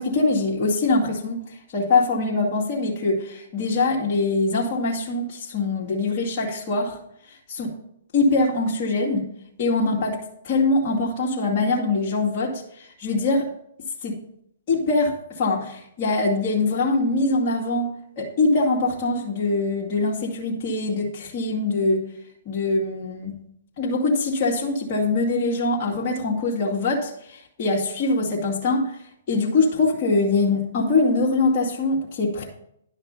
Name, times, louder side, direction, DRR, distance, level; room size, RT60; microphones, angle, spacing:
voice 1, 0.0-7.0 7.5-7.7 8.1-9.3 9.6-10.2 10.4-13.5 14.0-14.2 14.7-17.9 18.2-22.0 22.5-23.4 23.8-29.0 29.3-32.5, left 3 dB, 40° left, -4 dB, 2.4 m, -23 dB
11.0 x 5.8 x 5.7 m, 0.71 s
hypercardioid pair, 125°, 0 cm